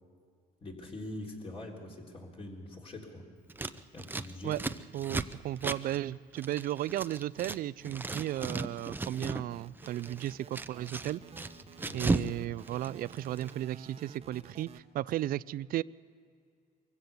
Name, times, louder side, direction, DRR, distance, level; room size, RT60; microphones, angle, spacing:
voice 1, 0.6-3.2 3.9-4.6 11.8-12.2, left 1 dB, 35° left, -1 dB, 3.9 m, -43 dB
Scissors, 3.5-7.6 7.8-9.5 9.8-12.3 12.6-13.5, right 3 dB, 10° right, 0.6 m, -36 dB
voice 2, 4.9-11.2 11.9-15.8, right 13 dB, 60° right, 20 dB, 0.4 m, -35 dB
sound 1, 9.5-14.8, right 5 dB, 35° right, 1.1 m, -51 dB
23.5 x 15.5 x 7.0 m, 2.3 s
cardioid pair, 110°, 17 cm